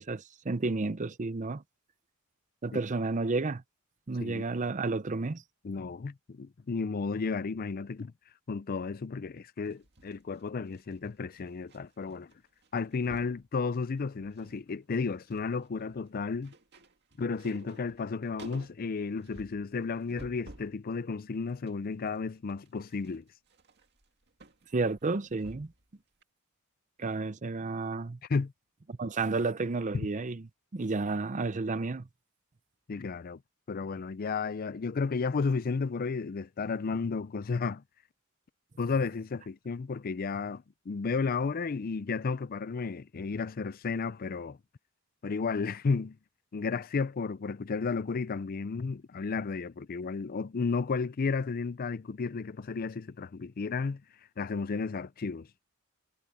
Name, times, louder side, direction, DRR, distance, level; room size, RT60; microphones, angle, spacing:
voice 1, 0.0-1.6 2.6-3.6 4.1-5.4 24.7-25.7 27.0-28.2 28.9-30.4 30.7-32.1, right 3 dB, 35° right, 0.6 m, -31 dB
voice 2, 5.6-8.1 8.5-12.3 12.7-16.5 17.2-23.2 28.3-28.5 29.9-30.1 32.9-33.4 33.7-37.8 38.8-44.6 45.2-46.2 46.5-54.0 54.4-55.5, left 4 dB, 40° left, 0.4 m, -33 dB
sound 1, 9.6-11.8 12.1-12.3 12.6-13.4 14.0-14.6 14.9-20.8 21.2-25.9 26.2-26.3, right 1 dB, 50° right, 2.2 m, -53 dB
head